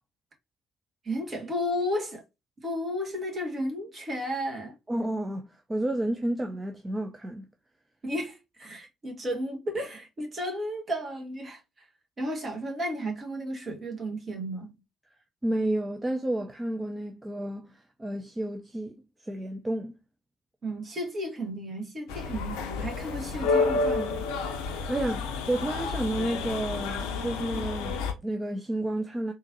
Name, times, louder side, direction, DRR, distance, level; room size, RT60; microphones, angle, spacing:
voice 1, 1.0-2.2 2.6-4.7 8.0-11.9 12.2-14.7 20.6-24.3, equal, 35° right, 1.4 m, -33 dB
voice 2, 4.9-7.5 15.4-19.9 24.6-29.3, right 1 dB, 15° right, 0.5 m, -31 dB
sound 1, 22.1-28.1, left 4 dB, 65° left, 0.5 m, -30 dB
3.7 x 2.6 x 2.6 m
figure-of-eight pair, 50°, 0 cm